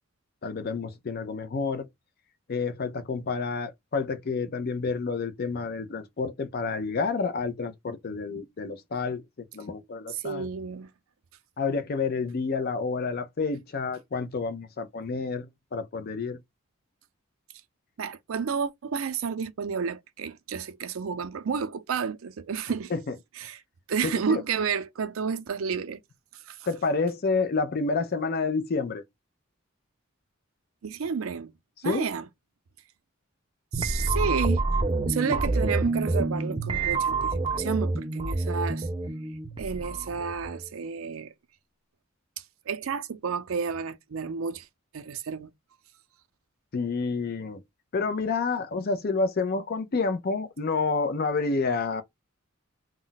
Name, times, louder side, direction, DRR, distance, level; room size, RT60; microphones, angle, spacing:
voice 1, 0.4-1.9 2.5-9.2 9.5-10.5 11.6-15.5 15.7-16.4 22.9-23.1 24.0-24.4 26.7-29.0 31.8-32.1 33.8-33.9 46.7-47.6 47.9-52.0, left 4 dB, 50° left, 0.5 m, -29 dB
voice 2, 10.1-10.9 18.0-22.9 23.4-23.6 23.9-26.0 26.5-26.6 30.8-31.5 31.8-32.3 33.7-34.7 35.1-38.9 39.6-41.3 42.7-44.7 44.9-45.5, right 6 dB, 90° right, 0.5 m, -31 dB
sound 1, 33.7-40.6, right 3 dB, 25° right, 0.4 m, -28 dB
2.3 x 2.1 x 3.8 m
head